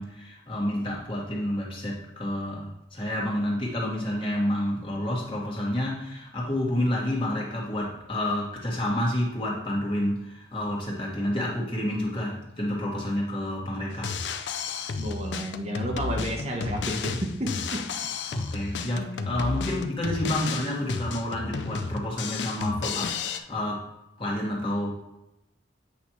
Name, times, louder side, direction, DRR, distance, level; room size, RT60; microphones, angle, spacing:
voice 1, 0.0-14.2 18.3-23.9 24.2-24.9, left 1 dB, 30° left, -3 dB, 1.7 m, -29 dB
Drum kit, 13.9-23.4, left 5 dB, 85° left, 0.5 m, -32 dB
voice 2, 15.0-17.8, equal, 35° right, 1 dB, 1.0 m, -31 dB
8.3 x 5.2 x 3.1 m, 0.92 s
head